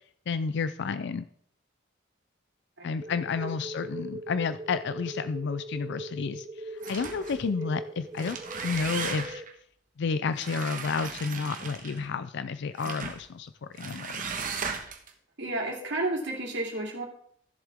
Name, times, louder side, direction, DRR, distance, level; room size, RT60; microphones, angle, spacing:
voice 1, 0.3-1.2 2.8-8.4 8.6-9.4 10.0-13.5 13.8-14.3, left 5 dB, 65° left, 13 dB, 0.4 m, -31 dB
sound 1, 3.0-9.4, right 1 dB, 20° right, 0.7 m, -41 dB
sound 2, 6.8-7.4 8.0-9.5 10.3-12.1 12.8-13.2 13.8-15.1, right 5 dB, 45° right, 1.3 m, -36 dB
voice 2, 15.4-17.0, right 2 dB, 65° right, 0 dB, 2.6 m, -31 dB
14.0 x 7.4 x 3.5 m, 0.63 s
head